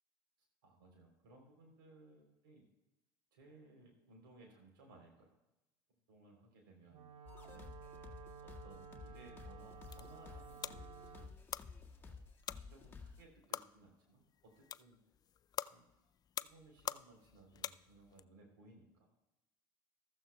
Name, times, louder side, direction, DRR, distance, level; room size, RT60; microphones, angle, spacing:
voice 1, 0.6-2.6 3.3-5.4 6.1-7.0 7.5-7.7 8.4-11.3 12.0-15.0 15.7-15.8 16.4-19.1, right 2 dB, 90° right, 2 dB, 3.4 m, -62 dB
Wind instrument woodwind instrument, 6.9-11.4, right 6 dB, 50° right, 0.9 m, -54 dB
sound 1, 7.3-13.2, left 4 dB, 20° left, 1.8 m, -54 dB
sound 2, 9.6-18.2, left 10 dB, 35° left, 0.3 m, -47 dB
15.0 x 14.0 x 2.2 m, 0.96 s
hypercardioid pair, 75°, 11 cm